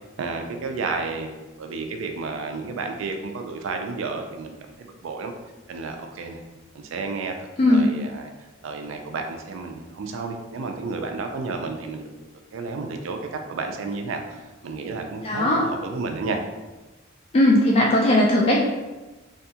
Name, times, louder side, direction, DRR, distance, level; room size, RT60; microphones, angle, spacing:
voice 1, 0.2-5.3 5.7-6.4 6.7-8.3 8.6-12.3 12.5-16.4, right 3 dB, 75° right, 4 dB, 0.4 m, -32 dB
voice 2, 7.6-7.9 15.2-15.7 17.3-18.6, left 1 dB, 30° left, -3 dB, 0.3 m, -18 dB
2.8 x 2.3 x 2.7 m, 1.2 s
head